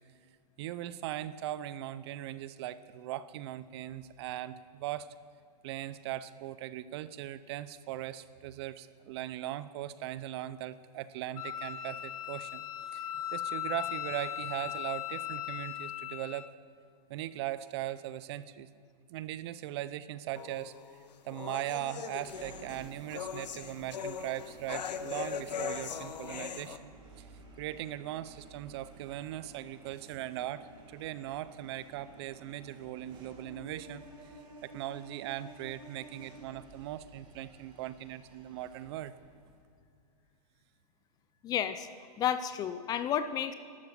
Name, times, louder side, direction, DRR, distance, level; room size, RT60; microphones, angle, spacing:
voice 1, 0.6-5.1 5.6-16.5 17.1-18.7 19.1-20.7 21.2-26.9 27.2-27.3 27.6-34.3 34.6-39.1, right 13 dB, 40° right, 15 dB, 0.6 m, -39 dB
Wind instrument woodwind instrument, 11.4-16.5, left 12 dB, 60° left, 0.9 m, -38 dB
sound 1, 20.4-26.8, left 7 dB, 80° left, 1.1 m, -40 dB
sound 2, 22.2-39.6, right 2 dB, 20° right, 2.7 m, -54 dB
voice 2, 41.4-41.9 42.2-43.5, left 9 dB, 20° left, 12 dB, 0.5 m, -31 dB
12.5 x 12.0 x 7.5 m, 2.3 s
hypercardioid pair, 140°, 21 cm